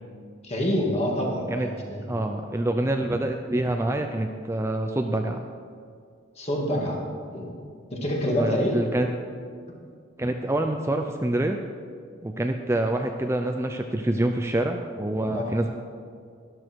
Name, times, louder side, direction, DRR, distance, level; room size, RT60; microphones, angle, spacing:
voice 1, 0.4-2.1 6.4-7.0 7.3-7.6 7.9-8.8 15.3-15.6, equal, 30° left, -1 dB, 2.3 m, -27 dB
voice 2, 2.0-5.4 8.2-9.1 10.2-11.6 12.2-15.7, right 1 dB, 15° right, 4 dB, 0.5 m, -26 dB
13.0 x 12.5 x 4.6 m, 2.2 s
head